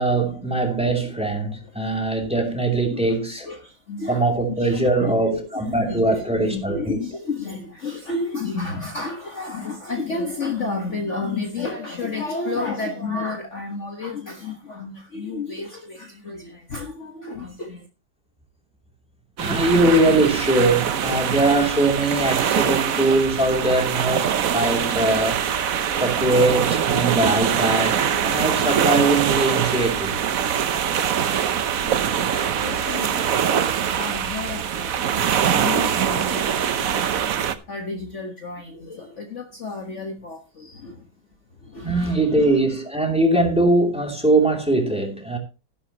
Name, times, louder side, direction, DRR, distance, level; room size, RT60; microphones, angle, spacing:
voice 1, 0.0-3.5 4.1-7.0 19.4-25.4 26.0-30.2 41.8-45.4, right 2 dB, 5° right, 2.8 m, -21 dB
voice 2, 1.6-2.0 2.9-3.2 3.4-17.9 24.2-24.3 32.2-32.3 32.6-37.2 37.7-41.1 41.6-42.8, left 3 dB, 40° left, 1.7 m, -32 dB
sound 1, 19.4-37.5, right 8 dB, 55° right, 1.1 m, -23 dB
13.0 x 11.5 x 3.0 m
omnidirectional pair, 2.0 m